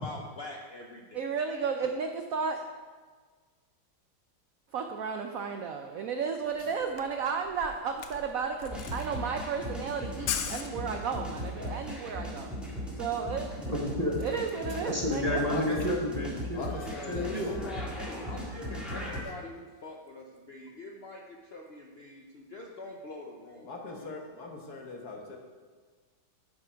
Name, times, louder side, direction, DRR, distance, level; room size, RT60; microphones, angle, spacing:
voice 1, 0.0-1.9 16.5-17.1 17.4-24.2, left 2 dB, 75° left, 0 dB, 0.5 m, -45 dB
voice 2, 1.1-2.6 4.7-12.5 12.9-13.7 14.2-15.4, right 6 dB, 85° right, 5 dB, 0.7 m, -33 dB
Camera, 6.5-6.6 6.8-11.3, left 9 dB, 90° left, 1.5 m, -38 dB
sound 1, 8.7-19.2, left 1 dB, ahead, 1.8 m, -38 dB
voice 3, 13.7-14.2 14.8-16.6 17.1-17.5, left 1 dB, 25° right, -2 dB, 0.9 m, -30 dB
voice 4, 15.5-16.0 16.5-17.3 18.9-19.2 23.7-25.4, left 3 dB, 55° left, 1 dB, 1.6 m, -40 dB
11.0 x 5.9 x 5.0 m, 1.5 s
omnidirectional pair, 2.1 m